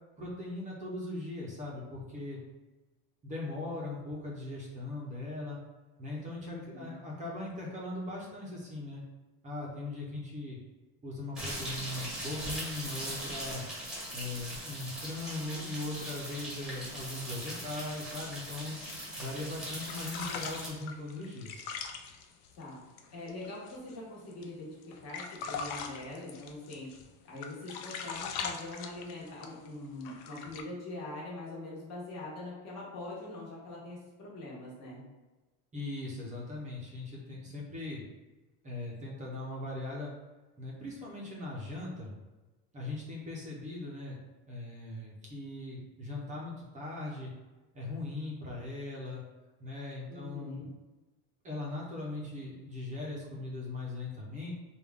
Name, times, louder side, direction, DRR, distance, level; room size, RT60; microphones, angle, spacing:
voice 1, 0.2-2.4 3.2-5.6 6.0-9.0 9.4-10.6 11.0-13.6 14.1-18.8 19.2-21.7 35.7-38.1 38.6-40.1 40.6-42.1 42.7-44.2 44.5-47.3 47.7-49.2 49.6-50.7 51.4-54.5, left 2 dB, 20° right, -4 dB, 0.5 m, -39 dB
voice 2, 6.5-7.0 22.6-22.8 23.1-26.9 27.2-35.0 50.1-50.7, left 2 dB, 35° left, -5 dB, 1.2 m, -43 dB
sound 1, 11.4-20.7, right 1 dB, ahead, 1.0 m, -40 dB
sound 2, 15.8-19.4 19.7-24.0 24.3-24.4 24.8-27.1 27.4-29.7 30.0-30.6, left 6 dB, 55° left, 0.5 m, -42 dB
3.4 x 2.3 x 3.4 m, 1.2 s
cardioid pair, 160°, 43 cm